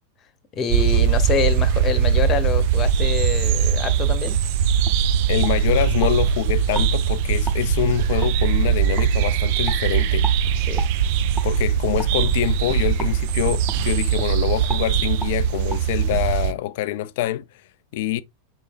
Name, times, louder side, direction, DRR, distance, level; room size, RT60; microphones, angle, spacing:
voice 1, 0.5-4.4 10.7-10.8, left 6 dB, 30° left, 0.9 m, -26 dB
sound 1, 0.7-16.5, right 8 dB, 50° right, 0.4 m, -21 dB
sound 2, 4.3-4.4 4.8-5.0 5.4-6.1 6.7-6.9 7.5-7.6 8.2-8.3 9.0-9.1 9.6-9.8 10.2-10.4 10.8-10.9 11.3-11.5 12.0-12.2 13.0-13.1 13.7-13.8 14.1-14.3 14.7-14.9 15.2-15.3 15.7-15.8, equal, ahead, 0.8 m, -33 dB
voice 2, 5.3-10.3 11.4-17.5 17.9-18.2, left 13 dB, 50° left, 0.3 m, -25 dB
5.9 x 3.3 x 2.3 m
figure-of-eight pair, 90°, 0 cm